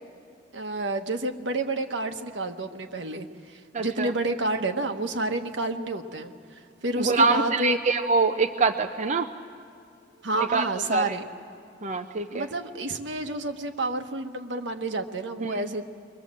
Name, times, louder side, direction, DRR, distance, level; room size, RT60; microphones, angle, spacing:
voice 1, 0.5-6.3 6.8-7.8 10.2-11.3 12.3-15.8, right 2 dB, 75° right, 6 dB, 1.3 m, -29 dB
voice 2, 3.7-4.1 7.0-9.3 10.4-10.7 10.9-11.0 11.8-12.5 15.4-15.6, right 4 dB, 40° right, 5 dB, 0.6 m, -24 dB
28.0 x 22.5 x 7.6 m, 2.4 s
head